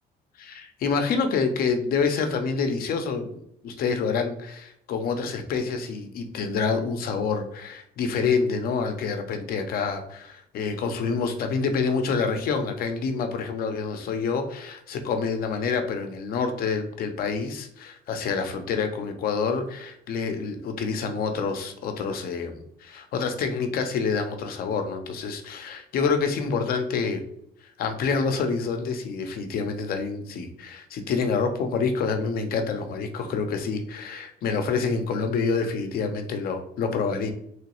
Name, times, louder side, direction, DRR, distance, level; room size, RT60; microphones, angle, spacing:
voice 1, 0.4-27.2 27.8-37.3, left 5 dB, 60° left, 7 dB, 0.6 m, -27 dB
3.1 x 3.0 x 3.0 m, 0.71 s
cardioid pair, 110°, 17 cm